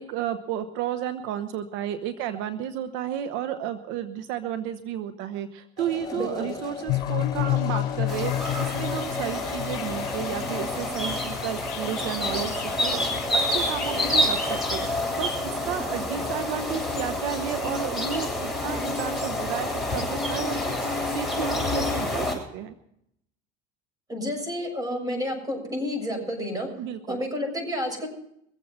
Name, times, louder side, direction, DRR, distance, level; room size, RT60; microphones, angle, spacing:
voice 1, 0.0-22.8 26.8-27.2, right 10 dB, 75° right, 10 dB, 0.9 m, -32 dB
sound 1, 5.8-10.9, left 5 dB, 20° left, 4.4 m, -37 dB
voice 2, 6.1-6.5 16.1-16.2 24.1-26.7 27.1-28.1, left 1 dB, 20° right, 3 dB, 6.8 m, -30 dB
sound 2, 6.9-14.8, left 17 dB, 80° left, 0.8 m, -32 dB
sound 3, 8.1-22.4, left 1 dB, 5° right, 6.8 m, -28 dB
23.0 x 8.0 x 5.6 m, 0.75 s
supercardioid pair, 95°, 20 cm